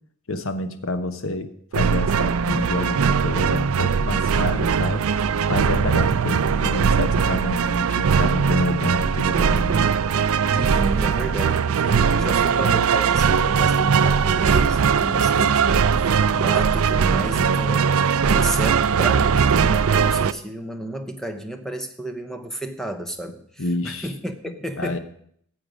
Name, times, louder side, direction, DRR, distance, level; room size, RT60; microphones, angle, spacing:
voice 1, 0.3-5.1 5.5-9.8 23.6-24.1 24.8-25.0, left 2 dB, 70° left, 10 dB, 1.0 m, -28 dB
sound 1, 1.7-20.3, right 6 dB, 80° right, 0.4 m, -20 dB
voice 2, 10.5-15.9 16.3-25.0, right 1 dB, ahead, 6 dB, 0.9 m, -32 dB
14.5 x 7.8 x 5.2 m, 0.67 s
head